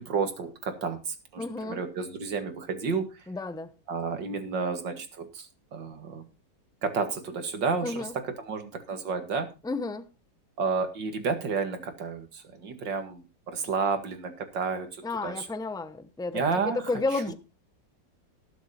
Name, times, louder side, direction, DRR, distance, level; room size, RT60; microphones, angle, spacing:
voice 1, 0.0-3.1 3.9-5.5 5.7-6.2 6.8-8.1 8.4-9.5 10.6-15.5 16.3-16.8, right 5 dB, 75° right, 2.6 m, -31 dB
voice 2, 1.4-1.8 3.3-3.7 7.8-8.1 9.6-10.0 15.0-17.3, left 3 dB, 5° left, 0.3 m, -32 dB
18.5 x 7.4 x 4.3 m
omnidirectional pair, 2.0 m